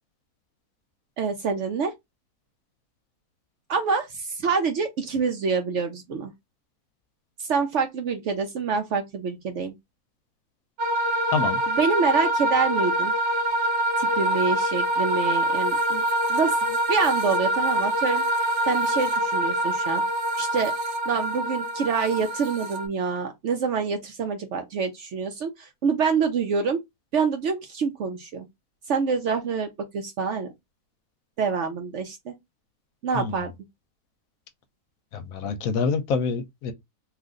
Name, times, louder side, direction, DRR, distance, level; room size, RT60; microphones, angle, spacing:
voice 1, 1.2-1.9 3.7-6.3 7.4-9.7 11.7-13.1 14.0-16.0 16.3-20.0 20.4-20.7 21.1-26.8 27.1-28.5 28.9-29.7 29.9-30.5 31.4-32.3 33.0-33.5, right 5 dB, 65° right, 0.8 m, -26 dB
sound 1, 10.8-22.9, right 1 dB, 90° right, 1.3 m, -25 dB
voice 2, 33.1-33.5 35.1-36.7, left 5 dB, 70° left, 1.0 m, -27 dB
2.9 x 2.5 x 3.6 m
omnidirectional pair, 1.6 m